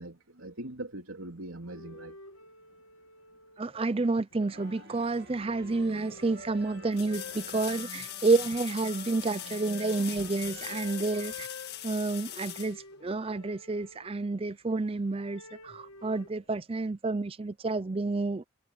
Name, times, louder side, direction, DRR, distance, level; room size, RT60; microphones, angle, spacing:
voice 1, 0.0-2.2, right 1 dB, 80° right, 3.5 m, -41 dB
sound 1, 1.6-4.0 4.3-14.5 15.1-16.3, left 3 dB, 85° left, 1.9 m, -49 dB
voice 2, 3.6-11.5 11.8-18.4, right 3 dB, 25° right, 0.5 m, -30 dB
sound 2, 4.5-11.4, right 2 dB, 50° right, 1.9 m, -50 dB
sound 3, 6.9-13.5 16.4-16.5, left 12 dB, 50° left, 1.8 m, -41 dB
head